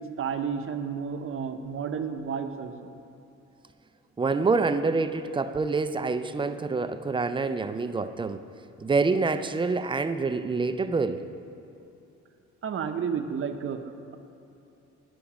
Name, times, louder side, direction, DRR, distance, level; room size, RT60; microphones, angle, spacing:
voice 1, 0.2-2.9 12.6-14.2, right 6 dB, 45° right, 7 dB, 0.7 m, -32 dB
voice 2, 4.2-8.4 8.8-11.3, right 4 dB, 15° right, 11 dB, 0.3 m, -26 dB
10.0 x 5.2 x 5.9 m, 2.8 s
cardioid pair, 90°, 30 cm